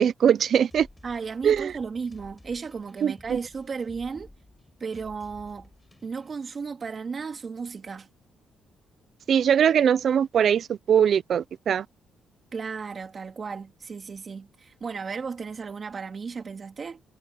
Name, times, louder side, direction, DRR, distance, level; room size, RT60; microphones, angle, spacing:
voice 1, 0.0-0.9 1.4-1.8 3.0-3.4 9.3-11.9, right 8 dB, 60° right, 0.5 m, -21 dB
sound 1, 0.7-6.4, left 2 dB, 15° left, 6.2 m, -52 dB
voice 2, 1.0-4.3 4.8-5.7 6.0-8.1 12.5-17.0, right 5 dB, 40° right, 2.9 m, -34 dB
cardioid pair, 90°, 0 cm